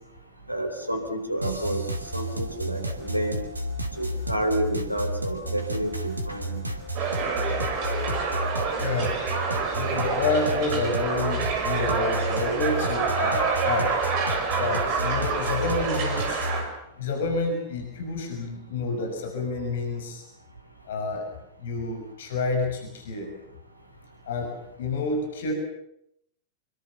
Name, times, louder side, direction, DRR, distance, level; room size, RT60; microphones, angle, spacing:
voice 1, 0.5-1.8 2.1-3.4 4.0-6.6, right 1 dB, 90° left, 7 dB, 3.9 m, -29 dB
sound 1, 1.4-16.7, equal, 80° right, 2.9 m, -32 dB
sound 2, 6.9-16.6, right 5 dB, 40° right, 5.9 m, -27 dB
voice 2, 8.7-9.1 9.7-13.9 14.5-16.5 17.0-20.2 20.8-21.3 21.6-23.3 24.2-25.5, left 3 dB, 60° left, 4 dB, 6.4 m, -29 dB
26.5 x 23.5 x 7.1 m, 0.75 s
figure-of-eight pair, 90°, 0 cm